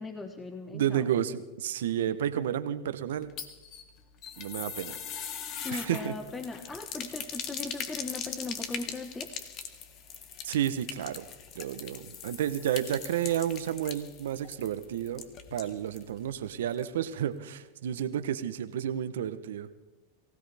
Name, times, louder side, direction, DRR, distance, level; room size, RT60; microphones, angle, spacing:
voice 1, 0.0-1.1 1.7-1.8 5.6-9.3, left 3 dB, 15° left, 7 dB, 1.0 m, -39 dB
voice 2, 0.7-3.3 4.4-5.0 5.7-6.1 10.4-11.2 11.5-19.7, right 10 dB, 80° right, 12 dB, 1.0 m, -31 dB
sound 1, 3.1-16.1 16.4-16.5 16.8-16.9, left 7 dB, 45° left, 1.6 m, -41 dB
23.5 x 16.5 x 3.5 m, 1.1 s
hypercardioid pair, 115°, 0 cm